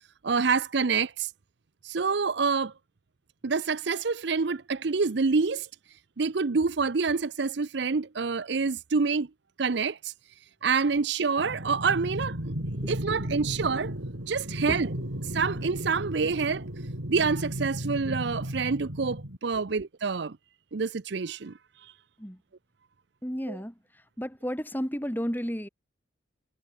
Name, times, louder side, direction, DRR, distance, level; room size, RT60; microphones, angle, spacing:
voice 1, 0.2-1.3 1.8-2.7 3.4-5.7 6.2-9.3 9.6-10.1 10.6-12.5 12.9-13.9 14.3-14.9 15.3-16.7 17.1-20.4 20.7-21.5 21.8-21.9 23.5-23.6, right 4 dB, 60° right, 0.6 m, -27 dB
sound 1, 11.4-19.4, equal, 85° right, 5.0 m, -34 dB
voice 2, 23.2-23.8 24.2-25.7, equal, 10° left, 4.7 m, -32 dB
head